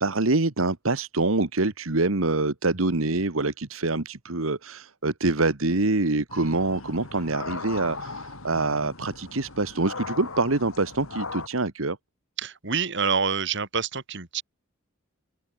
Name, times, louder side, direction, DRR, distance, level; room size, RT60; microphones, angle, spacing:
voice 1, 0.0-12.0, right 2 dB, 80° right, 1.6 m, -25 dB
sound 1, 6.3-11.5, left 3 dB, 90° left, 4.5 m, -38 dB
voice 2, 12.4-14.4, right 5 dB, 60° right, 3.3 m, -27 dB
open air
head